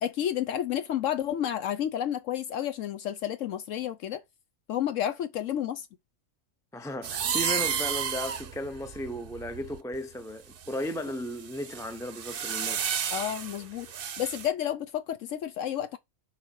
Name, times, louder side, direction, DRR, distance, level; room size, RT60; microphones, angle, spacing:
voice 1, 0.0-4.2 4.7-5.9 13.1-13.9 14.2-16.0, left 10 dB, 75° left, 0.9 m, -31 dB
voice 2, 6.7-13.0, left 1 dB, 5° left, 0.5 m, -35 dB
sound 1, 7.0-10.0 10.6-14.5, right 8 dB, 50° right, 0.8 m, -32 dB
7.2 x 4.1 x 4.6 m
omnidirectional pair, 1.4 m